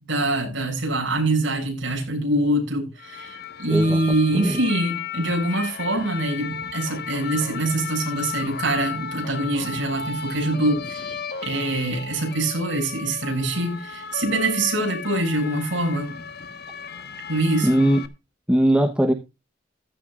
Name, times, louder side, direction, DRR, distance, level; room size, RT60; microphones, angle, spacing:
voice 1, 0.1-11.2 11.4-16.2 17.3-17.8, right 2 dB, 65° right, 7.1 m, -24 dB
sound 1, 3.0-18.1, left 6 dB, 55° left, 1.4 m, -35 dB
voice 2, 3.7-4.0 4.3-4.6 17.6-18.0 18.5-19.1, right 1 dB, 5° right, 1.1 m, -19 dB
15.0 x 13.0 x 2.5 m
head